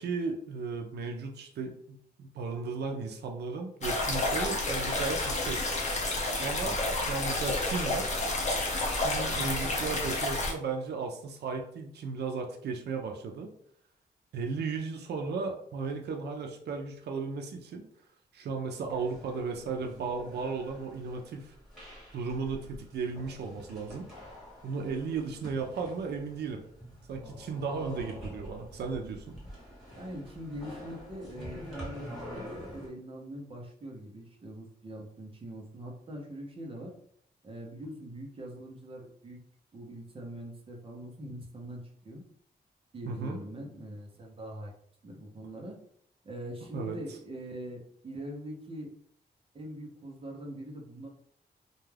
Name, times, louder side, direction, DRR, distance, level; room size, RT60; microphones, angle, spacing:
voice 1, 0.0-5.6 6.4-8.1 8.9-13.5 14.3-17.9 18.3-21.5 22.1-24.1 24.6-26.6 27.1-29.2 43.1-43.4 46.7-47.0, right 4 dB, 85° right, 3 dB, 0.5 m, -35 dB
sound 1, 3.8-10.5, left 2 dB, 45° left, 0.6 m, -30 dB
sound 2, 18.9-32.9, equal, ahead, 1.3 m, -46 dB
voice 2, 29.9-36.9 37.4-39.4 39.7-42.2 42.9-44.7 45.0-45.8 46.2-48.9 49.5-51.1, right 1 dB, 35° right, 0 dB, 0.6 m, -43 dB
2.3 x 2.2 x 3.2 m, 0.64 s
wide cardioid pair, 150°, 17 cm